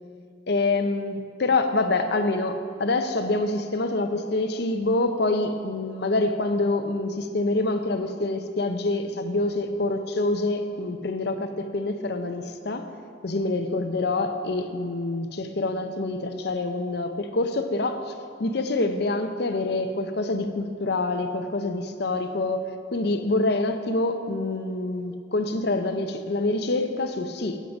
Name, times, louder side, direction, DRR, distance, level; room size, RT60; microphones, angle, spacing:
voice 1, 0.5-12.9 13.2-18.1 18.4-27.6, left 2 dB, 60° left, 7 dB, 0.6 m, -26 dB
10.0 x 7.5 x 5.3 m, 2.2 s
head